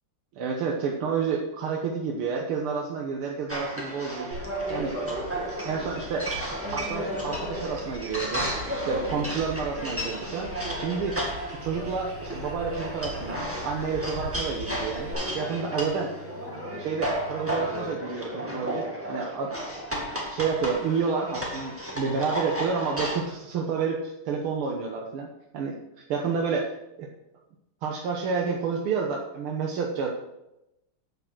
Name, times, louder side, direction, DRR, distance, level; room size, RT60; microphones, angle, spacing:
voice 1, 0.4-4.3 4.7-5.0 5.6-6.3 6.7-16.1 16.8-19.7 20.3-25.3 25.5-25.8 26.1-26.7 27.0-27.1 27.8-30.1, right 5 dB, 90° right, 0 dB, 2.0 m, -30 dB
sound 1, 3.5-23.2, equal, 5° right, 1.7 m, -33 dB
sound 2, 4.3-15.1, right 1 dB, 50° right, 3.5 m, -42 dB
sound 3, 11.6-17.9, left 3 dB, 30° left, 2.2 m, -47 dB
8.7 x 8.5 x 6.2 m, 0.89 s
omnidirectional pair, 2.3 m